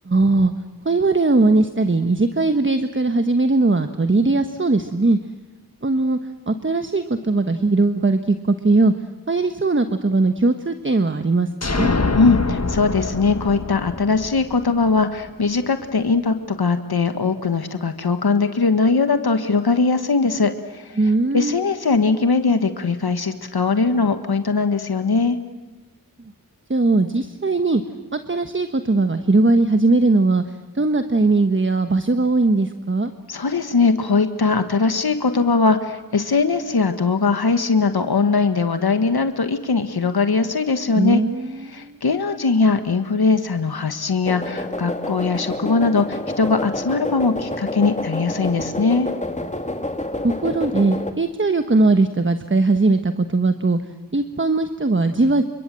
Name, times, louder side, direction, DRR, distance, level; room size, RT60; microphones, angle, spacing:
voice 1, 0.0-0.5 0.8-5.2 5.8-6.2 6.5-8.9 9.3-11.9 21.0-21.6 26.7-27.8 28.1-30.4 30.7-33.1 40.9-42.0 50.2-53.8 54.1-55.4, right 3 dB, 30° right, 8 dB, 1.3 m, -19 dB
sound 1, 11.6-15.3, left 3 dB, 45° left, 1.5 m, -25 dB
voice 2, 12.1-21.0 21.3-25.4 33.3-41.2 41.6-49.1, left 4 dB, 80° left, 8 dB, 1.6 m, -20 dB
sound 2, 44.2-51.1, left 1 dB, 20° left, 2.2 m, -28 dB
29.5 x 26.0 x 7.7 m, 1.1 s
wide cardioid pair, 50°, 37 cm